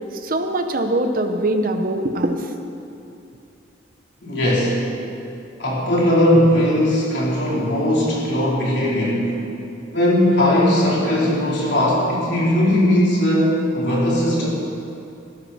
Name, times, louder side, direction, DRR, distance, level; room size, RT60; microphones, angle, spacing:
voice 1, 0.2-2.5, right 1 dB, 45° right, 6 dB, 0.9 m, -22 dB
voice 2, 4.2-4.8 5.6-9.3 9.9-14.5, left 1 dB, 60° left, -6 dB, 4.0 m, -18 dB
16.5 x 13.0 x 4.3 m, 2.7 s
head